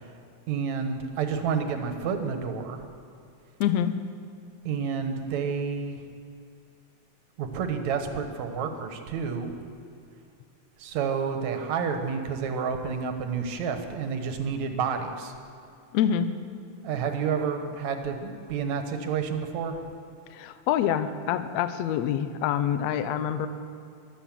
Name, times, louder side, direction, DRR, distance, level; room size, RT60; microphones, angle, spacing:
voice 1, 0.5-2.8 4.7-6.0 7.4-9.6 10.8-15.3 16.8-19.7, right 6 dB, 70° right, 6 dB, 2.4 m, -29 dB
voice 2, 3.6-3.9 15.9-16.3 20.3-23.5, left 9 dB, 75° left, 11 dB, 1.8 m, -26 dB
15.0 x 12.5 x 7.4 m, 2.5 s
omnidirectional pair, 3.5 m